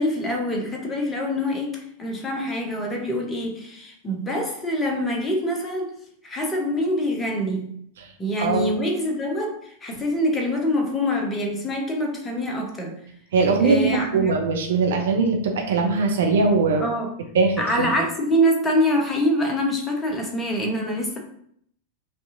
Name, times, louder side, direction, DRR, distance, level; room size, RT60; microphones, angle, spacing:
voice 1, 0.0-5.9 6.2-7.7 8.2-13.0 13.6-14.3 16.8-17.1 17.6-21.2, equal, 15° left, 1 dB, 1.0 m, -25 dB
voice 2, 8.4-8.8 13.3-16.8 17.3-18.0, right 4 dB, 60° right, 2 dB, 0.6 m, -21 dB
5.3 x 2.7 x 2.6 m, 0.67 s
figure-of-eight pair, 90°, 0 cm